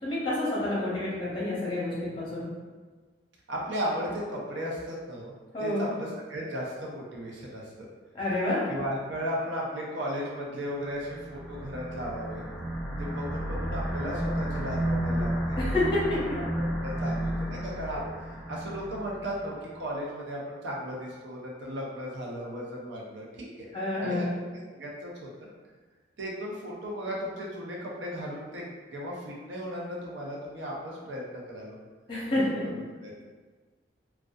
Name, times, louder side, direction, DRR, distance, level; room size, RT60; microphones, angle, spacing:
voice 1, 0.0-2.5 5.5-5.9 8.1-8.6 15.6-16.2 23.7-24.4 32.1-32.6, left 1 dB, 30° left, -7 dB, 0.7 m, -28 dB
voice 2, 3.5-5.3 5.6-7.9 8.7-12.4 13.0-15.8 16.1-16.2 16.5-23.7 24.0-24.2 24.7-25.5 26.2-31.8 32.3-32.7 33.0-33.1, equal, 90° right, -3 dB, 0.6 m, -36 dB
sound 1, 10.8-19.5, right 1 dB, ahead, 0.4 m, -32 dB
2.5 x 2.2 x 2.3 m, 1.4 s
head